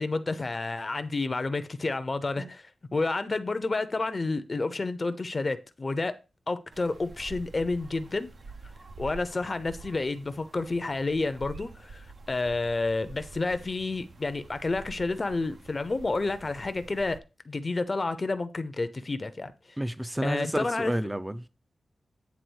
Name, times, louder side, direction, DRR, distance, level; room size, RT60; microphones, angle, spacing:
voice 1, 0.0-6.1 6.5-8.3 9.0-17.2 17.5-19.5 20.2-20.9, left 3 dB, 30° left, 0.7 m, -30 dB
sound 1, 6.7-17.2, right 3 dB, 50° right, 0.8 m, -47 dB
voice 2, 19.8-21.5, right 1 dB, 10° right, 0.5 m, -31 dB
9.4 x 3.6 x 6.3 m
wide cardioid pair, 135°, 0 cm